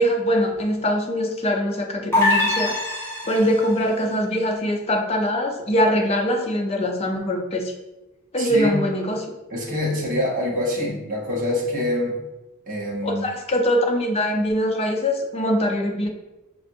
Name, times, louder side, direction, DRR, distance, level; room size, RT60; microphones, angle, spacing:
voice 1, 0.0-2.8 3.3-7.7 8.3-9.3 13.0-16.1, equal, 30° left, 2 dB, 0.6 m, -22 dB
sound 1, 2.1-3.8, left 2 dB, 10° left, 0.9 m, -22 dB
voice 2, 8.4-8.8 9.5-12.2 12.7-13.2, left 1 dB, 40° right, -3 dB, 1.1 m, -25 dB
5.6 x 2.5 x 2.6 m, 1.0 s
head